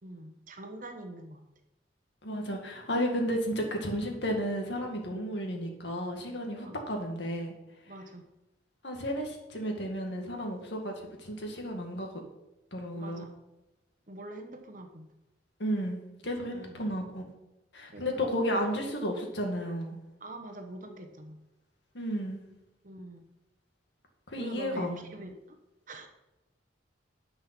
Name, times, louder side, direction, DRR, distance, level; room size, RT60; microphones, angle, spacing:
voice 1, 0.0-1.4 5.1-5.3 6.6-6.8 7.9-8.3 13.0-13.3 14.1-15.1 16.5-16.8 17.9-18.3 20.2-21.4 22.8-23.2 24.4-25.6 25.9-26.1, right 1 dB, 45° right, 5 dB, 1.2 m, -44 dB
voice 2, 2.2-7.5 8.8-12.1 12.7-13.3 15.6-16.0 16.2-17.2 17.7-20.0 21.9-22.4 24.3-25.1, equal, 70° left, 2 dB, 2.0 m, -33 dB
10.5 x 5.5 x 6.1 m, 0.95 s
head